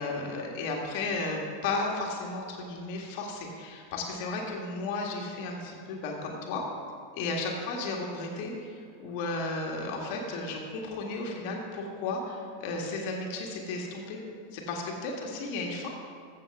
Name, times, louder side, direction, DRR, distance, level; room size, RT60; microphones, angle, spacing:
voice 1, 0.0-6.6 7.1-14.2 14.5-15.9, left 3 dB, 50° left, 0 dB, 1.7 m, -34 dB
15.0 x 6.9 x 3.5 m, 2.2 s
figure-of-eight pair, 90°, 0 cm